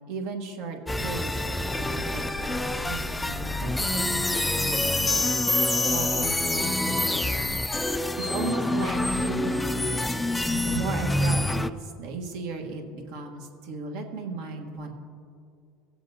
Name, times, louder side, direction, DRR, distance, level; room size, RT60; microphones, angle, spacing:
voice 1, 0.1-5.2 5.9-7.6 8.2-10.1 10.6-14.9, right 3 dB, 75° right, 1 dB, 1.3 m, -36 dB
sound 1, 0.9-11.7, left 1 dB, 10° left, 0.3 m, -26 dB
17.5 x 7.7 x 2.7 m, 2.5 s
supercardioid pair, 110°, 0 cm